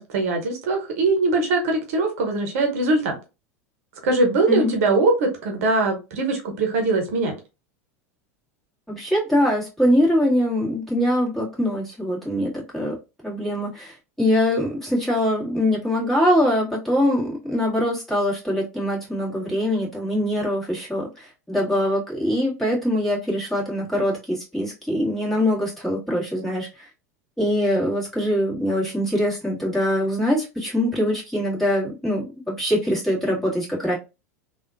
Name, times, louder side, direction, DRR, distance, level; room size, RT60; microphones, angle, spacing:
voice 1, 0.0-3.1 4.0-7.3, right 3 dB, 65° right, 0.9 m, -21 dB
voice 2, 8.9-13.0 13.2-26.9 27.4-34.0, equal, 5° left, 2.0 m, -23 dB
3.4 x 2.5 x 2.5 m
hypercardioid pair, 85°, 8 cm